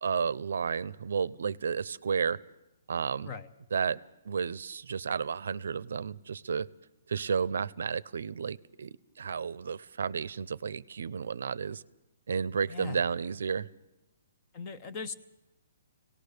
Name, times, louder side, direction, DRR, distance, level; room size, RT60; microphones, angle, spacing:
voice 1, 0.0-2.4 2.9-3.3 3.7-4.0 4.2-6.7 7.1-11.8 12.3-13.7, right 6 dB, 65° right, 20 dB, 0.7 m, -32 dB
voice 2, 14.5-15.1, left 5 dB, 20° left, 10 dB, 0.8 m, -39 dB
25.0 x 18.0 x 6.8 m, 0.92 s
hypercardioid pair, 175°, 0 cm